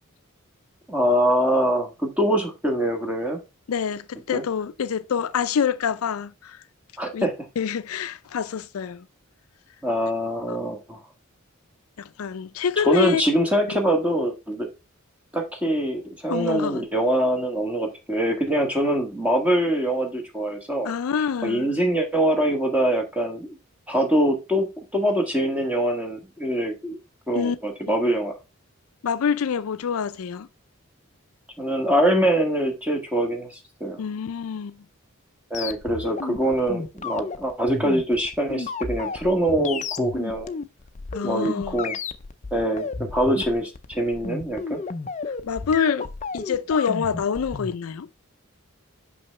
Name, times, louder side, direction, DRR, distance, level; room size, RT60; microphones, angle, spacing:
voice 1, 0.9-3.4 4.3-4.4 7.0-7.3 9.8-11.0 12.8-14.7 15.3-20.9 21.4-23.6 23.9-27.0 27.3-28.4 31.6-34.0 35.5-40.5 41.2-42.0 42.5-44.8, equal, 5° right, 1.3 m, -24 dB
voice 2, 3.7-6.6 7.1-7.3 7.6-9.0 10.5-10.6 12.0-13.2 13.7-13.8 16.3-16.8 20.8-21.7 27.3-27.6 27.9-28.0 29.0-30.5 34.0-34.8 41.1-41.8 45.4-48.1, left 7 dB, 90° left, 0.4 m, -26 dB
sound 1, 35.5-47.7, left 4 dB, 35° left, 0.5 m, -33 dB
5.8 x 5.5 x 3.2 m
head